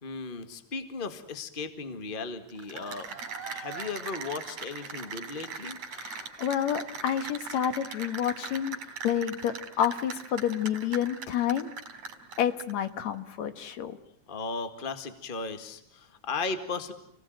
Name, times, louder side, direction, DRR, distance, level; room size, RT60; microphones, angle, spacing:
voice 1, 0.0-3.1 3.5-5.8 14.3-16.9, left 4 dB, 20° left, 9 dB, 1.7 m, -36 dB
Cheering / Applause, 2.5-12.9, right 5 dB, 75° right, 4.3 m, -40 dB
voice 2, 5.9-8.8 9.0-11.7 12.4-14.0, left 9 dB, 70° left, 10 dB, 2.6 m, -29 dB
30.0 x 18.5 x 9.3 m, 0.73 s
omnidirectional pair, 3.3 m